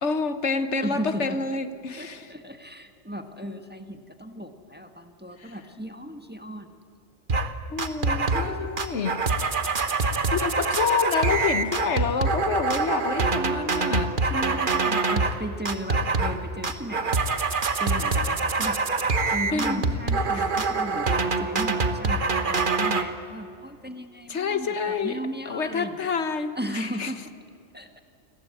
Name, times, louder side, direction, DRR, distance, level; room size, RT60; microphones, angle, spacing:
voice 1, 0.0-2.3 5.4-5.5 7.7-9.2 10.3-14.1 19.5-19.9 20.3-20.5 24.3-25.2 25.5-27.1, left 5 dB, 70° left, 11 dB, 1.5 m, -28 dB
voice 2, 0.8-1.4 2.0-6.7 8.3-8.7 14.2-19.0 19.3-26.1 26.6-27.2 27.7-28.0, equal, 10° right, 7 dB, 1.5 m, -36 dB
sound 1, 7.3-7.5 7.8-8.5 8.8-15.4 15.7-16.4 16.6-23.0, right 3 dB, 45° right, 1.4 m, -25 dB
29.0 x 21.0 x 8.5 m, 2.4 s
omnidirectional pair, 1.2 m